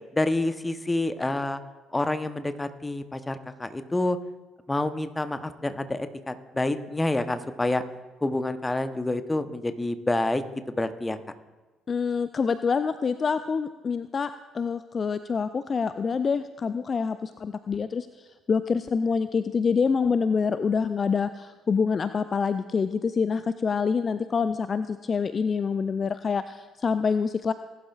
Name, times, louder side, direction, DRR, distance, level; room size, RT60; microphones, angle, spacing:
voice 1, 0.1-1.6 1.9-4.2 4.7-7.8 8.2-10.4 10.8-11.2, left 2 dB, 15° left, 10 dB, 0.9 m, -28 dB
voice 2, 11.9-27.5, left 5 dB, 40° left, 12 dB, 0.4 m, -26 dB
19.5 x 11.5 x 2.4 m, 1.2 s
figure-of-eight pair, 45°, 0 cm